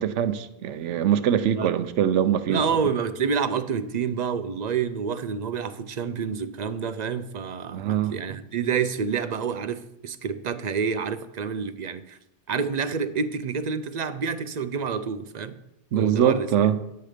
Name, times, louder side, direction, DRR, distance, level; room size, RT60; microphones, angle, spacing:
voice 1, 0.0-2.7 7.7-8.1 15.9-16.8, right 9 dB, 80° right, 1.0 m, -23 dB
voice 2, 2.5-12.2 12.5-15.6 15.9-16.5, right 6 dB, 50° right, 0.5 m, -28 dB
10.5 x 7.8 x 5.0 m
omnidirectional pair, 1.2 m